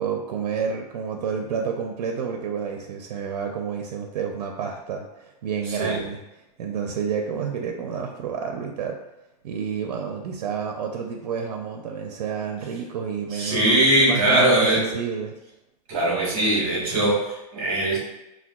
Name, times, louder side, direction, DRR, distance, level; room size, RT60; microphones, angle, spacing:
voice 1, 0.0-6.2 6.6-9.0 9.4-15.3, right 6 dB, 90° right, 3 dB, 0.4 m, -29 dB
voice 2, 13.3-14.9 15.9-18.0, right 1 dB, 30° right, -5 dB, 1.2 m, -21 dB
4.4 x 2.2 x 2.3 m, 0.98 s
supercardioid pair, 170°, 20 cm